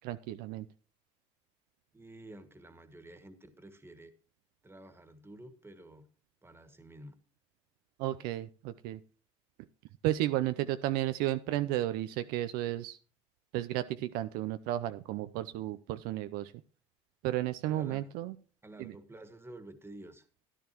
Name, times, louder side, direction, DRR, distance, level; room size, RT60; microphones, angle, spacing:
voice 1, 0.0-0.7 8.0-9.0 10.0-13.0 13.5-16.5 17.2-18.4 18.8-18.9, right 14 dB, 70° right, 11 dB, 0.6 m, -33 dB
voice 2, 1.9-4.1 4.6-6.1 6.4-7.2 17.7-18.1 18.6-20.3, right 1 dB, 15° right, 10 dB, 1.8 m, -50 dB
14.0 x 10.5 x 3.0 m, 0.37 s
hypercardioid pair, 80°, 16 cm